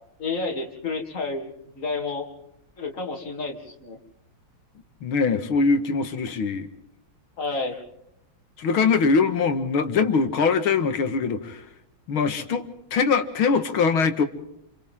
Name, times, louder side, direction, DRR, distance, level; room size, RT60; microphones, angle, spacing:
voice 1, 0.2-2.3 2.8-4.0 7.4-7.8, left 3 dB, 40° left, 2 dB, 3.2 m, -30 dB
voice 2, 5.0-6.7 8.6-11.6 12.1-12.7 12.9-14.2, left 5 dB, 85° left, 8 dB, 2.5 m, -22 dB
28.0 x 28.0 x 3.7 m, 0.80 s
omnidirectional pair, 2.2 m